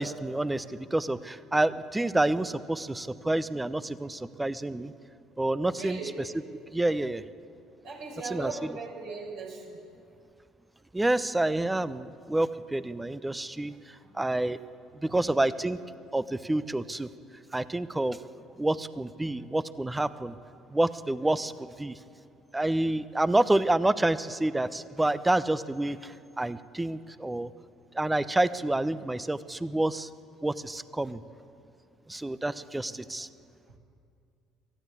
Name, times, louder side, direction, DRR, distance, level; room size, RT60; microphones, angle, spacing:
voice 1, 0.0-4.9 5.4-6.0 6.7-7.2 8.2-8.8 10.9-13.7 14.1-14.6 15.0-15.8 16.1-17.1 17.5-18.2 18.6-20.3 20.7-22.0 22.5-27.5 27.9-30.1 30.4-31.2 32.1-33.3, right 1 dB, 15° right, 14 dB, 0.9 m, -28 dB
voice 2, 5.7-6.1 7.8-9.8 13.9-14.0 15.1-15.2, right 4 dB, 70° right, -2 dB, 6.0 m, -38 dB
23.0 x 15.0 x 8.4 m, 2.4 s
hypercardioid pair, 55°, 0 cm